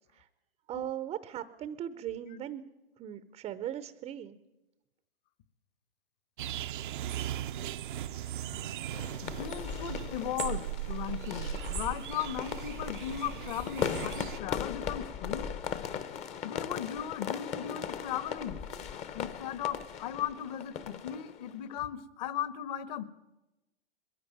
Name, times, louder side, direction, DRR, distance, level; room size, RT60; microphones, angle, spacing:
voice 1, 0.7-2.6 3.0-4.4 14.4-14.5, right 10 dB, 15° right, 12 dB, 0.7 m, -38 dB
sound 1, 6.4-14.4, right 12 dB, 50° right, 0.7 m, -38 dB
sound 2, 8.9-21.8, left 8 dB, 20° left, 1.0 m, -38 dB
voice 2, 9.2-15.5 16.4-18.6 19.1-23.0, left 10 dB, 40° left, 13 dB, 1.5 m, -37 dB
21.5 x 15.5 x 9.3 m, 1.0 s
hypercardioid pair, 130°, 32 cm